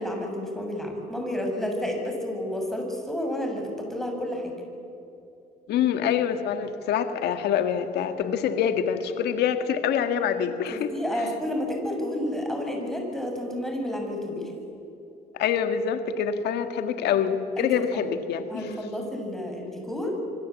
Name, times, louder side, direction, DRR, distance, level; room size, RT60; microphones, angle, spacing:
voice 1, 0.0-4.5 10.7-14.5 17.6-18.1 18.5-20.2, left 1 dB, ahead, 1 dB, 6.9 m, -30 dB
voice 2, 5.7-11.3 15.3-18.7, left 8 dB, 75° left, 8 dB, 1.8 m, -26 dB
26.0 x 25.0 x 8.4 m, 2.7 s
cardioid pair, 110°, 17 cm